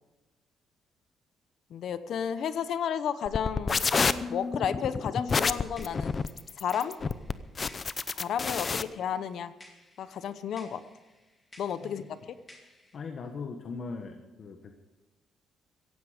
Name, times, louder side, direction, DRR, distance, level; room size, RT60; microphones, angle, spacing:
voice 1, 1.7-3.9 4.3-6.1 6.6-7.0 8.2-9.5 10.0-10.8 11.6-12.2, left 8 dB, 65° left, 13 dB, 0.9 m, -32 dB
sound 1, 3.2-8.8, left 4 dB, 30° left, 0.6 m, -29 dB
sound 2, 5.3-13.0, left 1 dB, 15° left, 2.6 m, -57 dB
voice 2, 12.9-14.7, left 4 dB, 45° left, 5 dB, 1.4 m, -40 dB
17.0 x 15.0 x 5.1 m, 1.1 s
cardioid pair, 145°, 0 cm